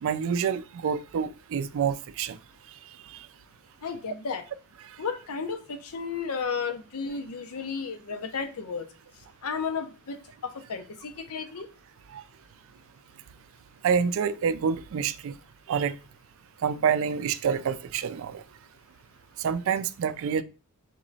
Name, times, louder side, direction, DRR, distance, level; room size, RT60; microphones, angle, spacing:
voice 1, 0.0-2.4 3.1-3.3 12.1-12.2 13.8-15.3 15.7-16.0 16.6-18.4 19.4-20.4, right 7 dB, 65° right, 0.3 m, -27 dB
voice 2, 3.8-4.4 5.0-8.9 9.4-10.2 10.4-11.7, left 5 dB, 75° left, 0.6 m, -33 dB
3.7 x 3.0 x 3.9 m
head